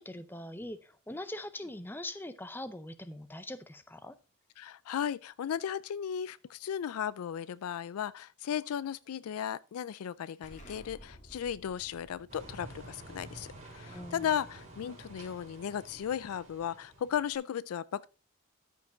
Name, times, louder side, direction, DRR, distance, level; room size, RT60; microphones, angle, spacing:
voice 1, 0.0-4.2 13.9-14.3, left 1 dB, 10° left, 0.5 m, -42 dB
voice 2, 4.6-18.1, left 8 dB, 90° left, 0.4 m, -36 dB
Explosion, 10.4-15.8, equal, 35° left, 2.2 m, -56 dB
sound 1, 12.3-17.3, right 1 dB, 35° right, 3.3 m, -50 dB
13.0 x 5.5 x 3.8 m
head